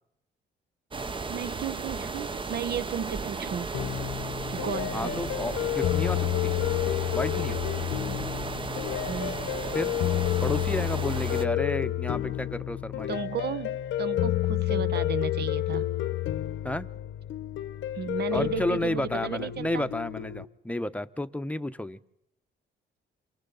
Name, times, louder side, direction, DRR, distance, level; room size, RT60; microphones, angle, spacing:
sound 1, 0.9-11.4, right 4 dB, 25° right, 0.8 m, -35 dB
voice 1, 1.3-3.7 4.5-5.3 8.1-8.3 9.1-9.5 13.1-15.9 17.9-19.9, right 8 dB, 55° right, 14 dB, 0.9 m, -34 dB
sound 2, 3.7-20.4, left 14 dB, 75° left, 0.9 m, -30 dB
voice 2, 4.9-6.6 7.1-7.6 9.7-10.0 10.4-13.2 16.6-16.9 18.3-22.0, left 1 dB, 5° left, 11 dB, 0.9 m, -31 dB
28.5 x 23.5 x 4.0 m, 0.85 s
cardioid pair, 90°, 20 cm